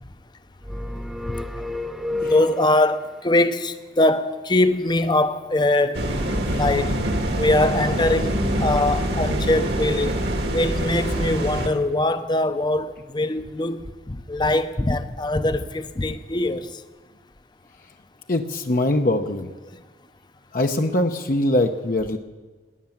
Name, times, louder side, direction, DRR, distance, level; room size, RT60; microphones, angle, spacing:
sound 1, 0.6-3.0, left 2 dB, ahead, 0.4 m, -30 dB
voice 1, 2.2-6.9 7.4-10.1 10.5-16.7, left 2 dB, 25° left, 0.7 m, -22 dB
sound 2, 5.9-11.7, right 1 dB, 65° right, 1.8 m, -24 dB
voice 2, 18.3-19.5 20.5-22.2, left 1 dB, 50° left, 0.8 m, -22 dB
18.5 x 10.0 x 7.2 m
head